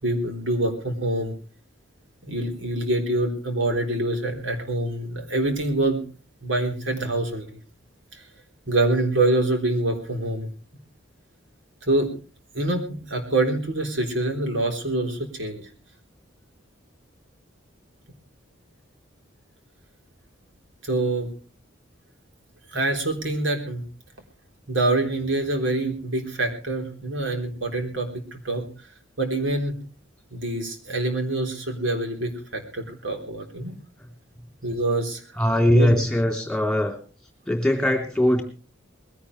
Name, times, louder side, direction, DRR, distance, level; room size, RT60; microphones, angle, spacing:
voice 1, 0.0-1.3 2.2-6.0 6.4-7.5 8.1-8.2 8.7-10.5 11.8-12.1 12.5-15.7 20.8-21.3 22.7-23.8 24.7-28.6 29.2-29.7 30.3-33.7 34.6-35.2 35.6-35.9, right 2 dB, 75° right, 3 dB, 3.8 m, -25 dB
voice 2, 35.4-37.0 37.5-38.4, left 1 dB, 5° left, 3 dB, 3.3 m, -21 dB
21.0 x 16.5 x 3.3 m, 0.36 s
head